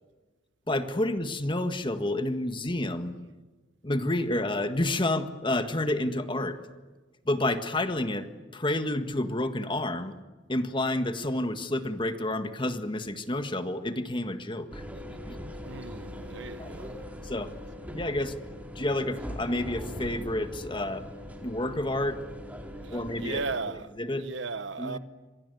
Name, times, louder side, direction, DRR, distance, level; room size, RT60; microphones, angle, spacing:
voice 1, 0.7-3.1 3.8-6.6 7.2-8.3 8.5-10.2 10.5-14.8 15.2-15.4 16.6-16.7 17.2-17.5 17.9-18.3 18.7-21.1 21.4-22.2 22.9-23.4 24.0-24.3 24.8-25.0, left 1 dB, 25° left, 1.7 m, -29 dB
sound 1, 14.7-23.6, equal, 10° right, 4.2 m, -41 dB
voice 2, 15.6-17.0 22.8-25.0, right 3 dB, 75° right, 1.1 m, -36 dB
27.0 x 23.0 x 9.4 m
head